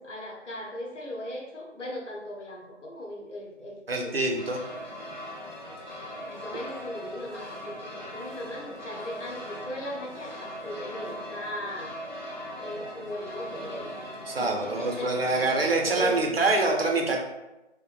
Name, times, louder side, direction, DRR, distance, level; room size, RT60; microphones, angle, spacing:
voice 1, 0.0-4.3 6.3-11.9 12.5-14.0 14.4-15.1 15.4-16.3, left 1 dB, 75° left, -1 dB, 0.8 m, -38 dB
voice 2, 3.9-4.6 14.3-17.2, right 2 dB, 55° right, 1 dB, 0.5 m, -25 dB
sound 1, 4.4-16.2, equal, 40° left, 0.5 m, -40 dB
2.4 x 2.1 x 3.0 m, 1.0 s
figure-of-eight pair, 165°, 36 cm